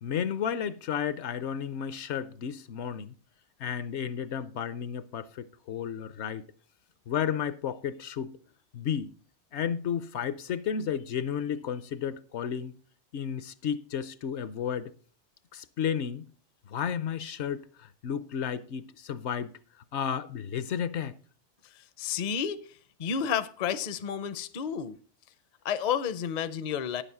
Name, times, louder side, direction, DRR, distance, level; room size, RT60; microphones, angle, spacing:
voice 1, 0.0-3.1 3.6-6.4 7.1-8.4 8.7-9.1 9.5-12.8 13.1-14.9 15.5-16.3 16.7-19.5 19.9-21.2, left 8 dB, 70° left, 0.9 m, -32 dB
voice 2, 21.7-25.0 25.6-27.0, left 8 dB, 50° left, 0.6 m, -31 dB
9.8 x 7.1 x 5.6 m
omnidirectional pair, 1.2 m